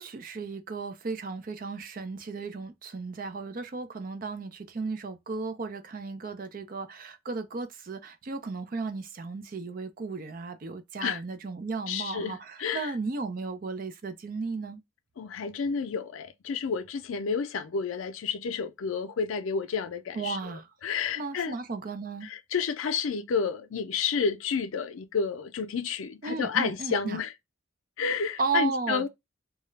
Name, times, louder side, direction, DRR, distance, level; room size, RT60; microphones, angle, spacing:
voice 1, 0.0-14.8 20.1-20.7 21.1-22.3 26.2-27.2 28.4-29.1, right 4 dB, 45° right, 0.4 m, -35 dB
voice 2, 11.9-12.9 15.2-20.4 20.8-21.5 22.2-27.3 28.0-29.1, left 6 dB, 85° left, 0.4 m, -30 dB
2.3 x 2.0 x 3.0 m
head